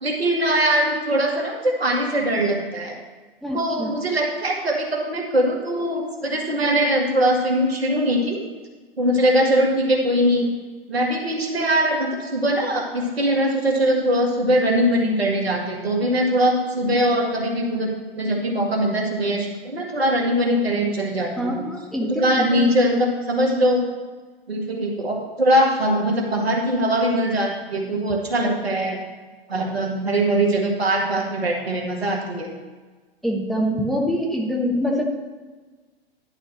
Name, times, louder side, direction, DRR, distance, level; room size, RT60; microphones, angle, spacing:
voice 1, 0.0-3.0 3.5-8.4 9.0-10.5 10.9-17.9 18.2-21.7 22.1-23.8 24.5-29.0 29.5-32.5, right 1 dB, 85° right, 0 dB, 1.9 m, -21 dB
voice 2, 3.4-3.9 21.4-23.0 33.2-35.1, equal, ahead, 0 dB, 0.9 m, -25 dB
11.0 x 4.4 x 6.2 m, 1.3 s
figure-of-eight pair, 105°, 30 cm